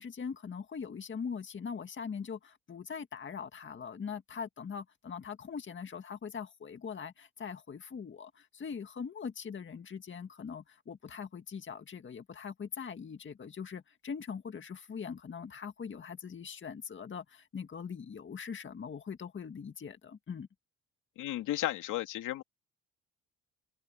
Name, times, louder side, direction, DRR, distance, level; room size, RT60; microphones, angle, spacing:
voice 1, 0.0-20.5, left 6 dB, 40° left, 2.0 m, -42 dB
voice 2, 21.2-22.4, left 14 dB, 90° left, 2.9 m, -34 dB
open air
cardioid pair, 90°, 30 cm